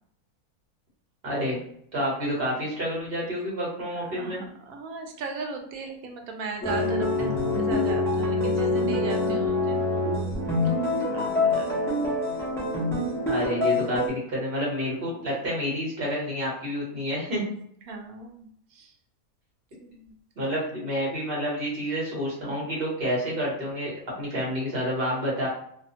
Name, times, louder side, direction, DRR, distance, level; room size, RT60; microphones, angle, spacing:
voice 1, 1.2-1.6 1.9-4.4 13.3-17.4 20.4-25.5, equal, 45° right, -5 dB, 1.2 m, -29 dB
voice 2, 4.0-9.9 11.1-12.0 17.9-18.9 19.8-20.1, right 4 dB, 75° right, 2 dB, 1.0 m, -37 dB
sound 1, 6.6-14.1, left 2 dB, 5° left, 0.4 m, -25 dB
2.8 x 2.2 x 2.7 m, 0.67 s
omnidirectional pair, 1.6 m